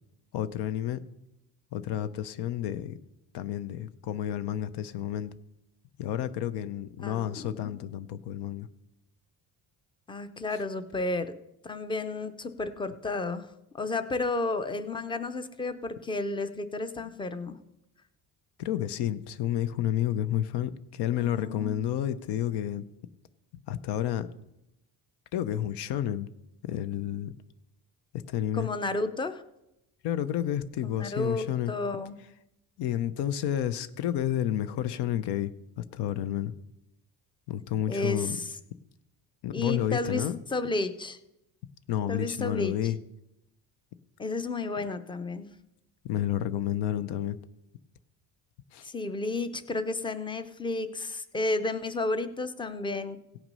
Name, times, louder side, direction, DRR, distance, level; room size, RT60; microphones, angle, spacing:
voice 1, 0.3-1.0 1.7-3.0 3.3-5.3 6.0-8.7 18.6-22.8 23.5-24.3 25.3-26.3 26.6-27.3 28.3-28.7 30.0-31.7 32.8-36.5 37.5-38.4 39.4-40.4 41.9-43.0 46.0-47.4 48.7-48.9, left 11 dB, 80° left, 0.7 m, -30 dB
voice 2, 7.0-7.8 10.1-11.3 11.6-13.5 13.7-17.6 21.2-21.8 28.5-29.4 30.8-32.2 37.9-38.6 39.5-41.2 42.1-42.9 44.2-45.5 48.8-53.2, left 2 dB, 15° left, 0.5 m, -32 dB
17.0 x 6.0 x 5.4 m
cardioid pair, 150°, 40 cm